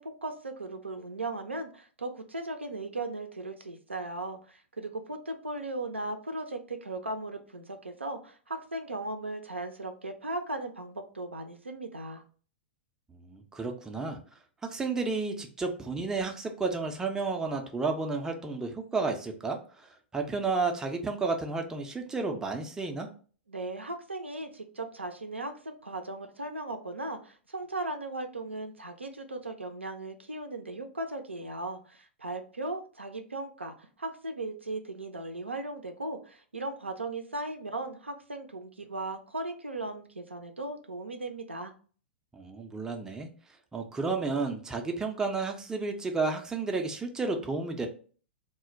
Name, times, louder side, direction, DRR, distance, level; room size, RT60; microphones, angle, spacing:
voice 1, 0.0-12.2 23.5-41.7, right 2 dB, 85° right, 5 dB, 0.4 m, -37 dB
voice 2, 13.1-14.2 14.7-19.9 20.1-23.1 42.3-43.3 43.7-47.9, right 3 dB, 10° right, 3 dB, 0.4 m, -32 dB
2.1 x 2.1 x 3.7 m, 0.41 s
figure-of-eight pair, 105°, 6 cm